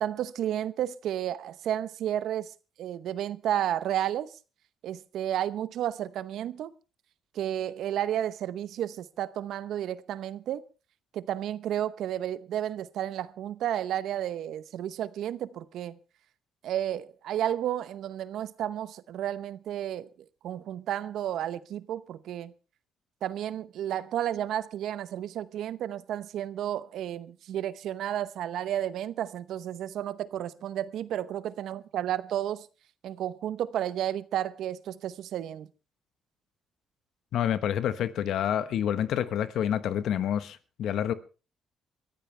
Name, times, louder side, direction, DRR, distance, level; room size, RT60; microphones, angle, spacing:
voice 1, 0.0-2.5 2.8-4.3 4.8-6.7 7.3-10.6 11.1-16.0 16.6-20.1 20.4-22.5 23.2-32.7 33.0-35.7, right 11 dB, 80° right, 0.8 m, -32 dB
voice 2, 37.3-41.1, left 10 dB, 75° left, 1.2 m, -28 dB
22.0 x 14.5 x 3.3 m
cardioid pair, 90°, 0 cm